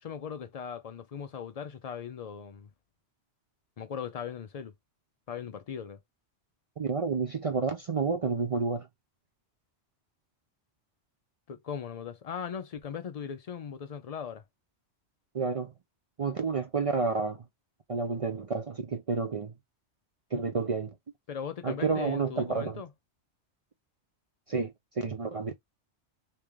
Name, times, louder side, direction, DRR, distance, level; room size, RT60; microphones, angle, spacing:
voice 1, 0.0-2.7 3.8-4.7 5.3-6.0 11.5-14.4 21.3-22.9, left 7 dB, 65° left, 0.3 m, -39 dB
voice 2, 6.8-8.9 15.3-15.7 16.2-17.4 17.9-19.5 20.3-20.9 21.6-22.8 24.5-25.5, right 4 dB, 50° right, 0.4 m, -30 dB
3.3 x 2.9 x 3.4 m
omnidirectional pair, 1.2 m